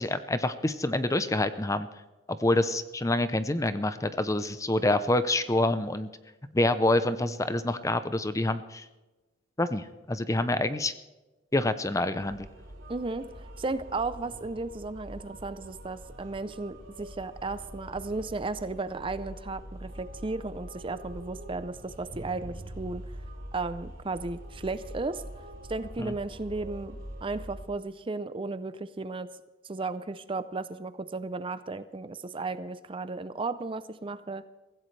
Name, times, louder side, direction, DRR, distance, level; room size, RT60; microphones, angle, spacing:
voice 1, 0.0-1.9 2.3-6.1 6.5-8.8 9.6-10.9 11.5-12.5 26.0-26.1, left 2 dB, 15° left, 12 dB, 0.6 m, -27 dB
sound 1, 12.2-27.6, right 1 dB, 85° right, 4.4 m, -44 dB
voice 2, 12.9-13.3 13.6-23.0 23.5-25.2 25.7-29.3 29.6-34.4, right 3 dB, 30° right, 13 dB, 0.6 m, -34 dB
23.5 x 15.5 x 3.3 m, 1.1 s
head